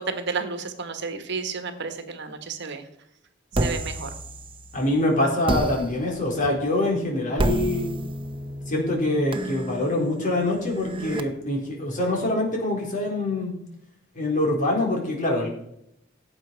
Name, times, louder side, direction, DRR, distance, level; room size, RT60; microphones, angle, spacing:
voice 1, 0.0-2.8 3.6-4.1, right 4 dB, 60° right, 8 dB, 1.5 m, -31 dB
sound 1, 3.5-4.9 5.5-11.2, right 1 dB, 25° right, 0.9 m, -30 dB
voice 2, 4.7-7.9 8.7-13.5 14.2-15.5, left 1 dB, 40° left, -1 dB, 4.0 m, -24 dB
17.0 x 8.0 x 4.6 m, 0.77 s
head